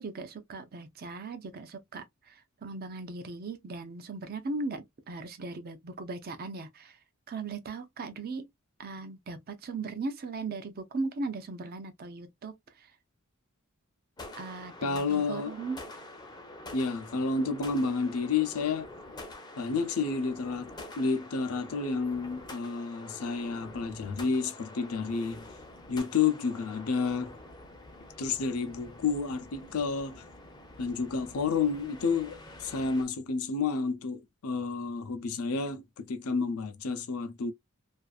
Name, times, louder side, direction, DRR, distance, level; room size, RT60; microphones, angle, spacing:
voice 1, 0.0-7.0 7.3-8.5 8.8-12.9 14.4-15.8, right 3 dB, 45° right, 0.5 m, -38 dB
sound 1, 14.2-33.0, left 2 dB, 20° left, 0.6 m, -47 dB
voice 2, 14.8-15.5 16.7-18.9 19.6-20.7 21.0-25.4 25.9-27.3 28.2-30.2 30.8-37.5, left 4 dB, 80° left, 0.6 m, -30 dB
2.5 x 2.4 x 2.3 m
head